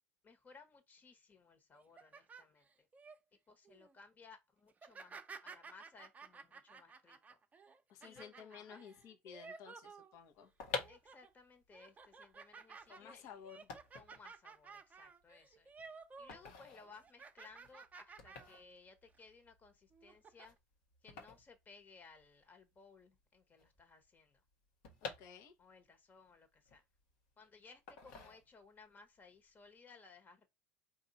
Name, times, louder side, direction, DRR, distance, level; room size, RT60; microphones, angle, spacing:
voice 1, 0.2-2.9 3.5-7.4 8.0-8.8 10.9-13.4 13.9-15.7 16.2-20.6 21.0-24.4 25.6-26.8 27.4-30.5, left 4 dB, 30° left, 1.4 m, -61 dB
sound 1, 1.7-3.2 3.6-3.9 4.7-10.5 10.8-11.3 11.7-16.4 16.7-18.6 19.0-19.2 19.9-20.5, right 4 dB, 25° right, 0.7 m, -55 dB
voice 2, 7.9-10.5 12.9-13.7 25.0-25.5, left 7 dB, 60° left, 1.2 m, -54 dB
sound 2, 10.3-22.5 22.7-22.8 23.0-25.9 26.3-27.3 27.9-28.9 29.2-29.5, left 5 dB, 80° left, 1.4 m, -49 dB
4.5 x 2.7 x 4.1 m
supercardioid pair, 95°, 6 cm